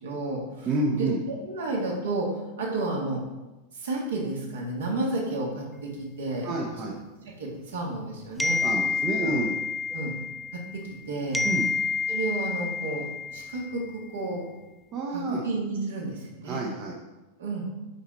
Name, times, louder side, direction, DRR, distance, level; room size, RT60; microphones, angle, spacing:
voice 1, 0.0-0.7 0.9-2.3 2.6-3.2 3.8-6.5 7.4-8.6 9.2-9.3 9.9-10.1 10.7-11.5 12.1-13.1 13.3-14.4 15.1-16.6 17.4-17.7, right 2 dB, 65° right, -2 dB, 1.9 m, -31 dB
voice 2, 0.6-1.2 6.4-7.0 8.6-9.6 11.4-11.7 14.9-15.4 16.4-17.0, right 2 dB, 30° right, -1 dB, 0.9 m, -29 dB
sound 1, 8.4-11.0 11.3-13.9, left 4 dB, ahead, 0.4 m, -29 dB
6.6 x 4.8 x 4.4 m, 1.1 s
figure-of-eight pair, 90°, 0 cm